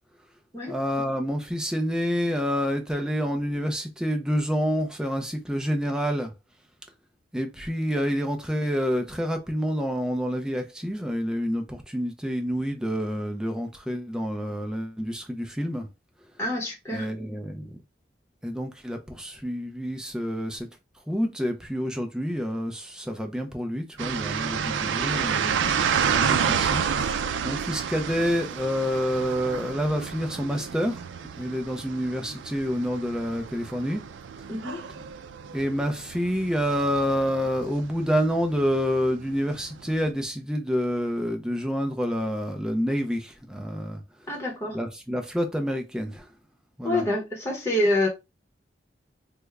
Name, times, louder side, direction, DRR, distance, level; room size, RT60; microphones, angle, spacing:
voice 1, 0.7-6.3 7.3-15.9 16.9-17.8 18.4-20.7 21.1-31.0 31.4-34.0 35.5-44.3 44.7-46.3 46.8-47.0, equal, 5° right, 0.4 m, -28 dB
voice 2, 16.4-17.1 34.5-34.8 44.3-44.8 46.8-48.1, left 1 dB, 15° left, 0.8 m, -26 dB
sound 1, 24.0-40.1, right 7 dB, 80° right, 0.4 m, -30 dB
3.4 x 2.1 x 3.4 m
head